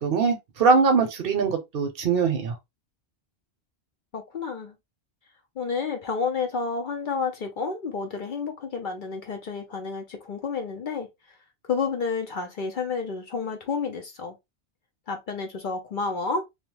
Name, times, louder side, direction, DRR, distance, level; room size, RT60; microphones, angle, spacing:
voice 1, 0.0-2.6, right 5 dB, 60° right, 0.8 m, -22 dB
voice 2, 4.1-4.7 5.6-11.1 11.7-14.4 15.1-16.5, left 5 dB, 55° left, 0.6 m, -30 dB
2.8 x 2.0 x 2.9 m
omnidirectional pair, 1.1 m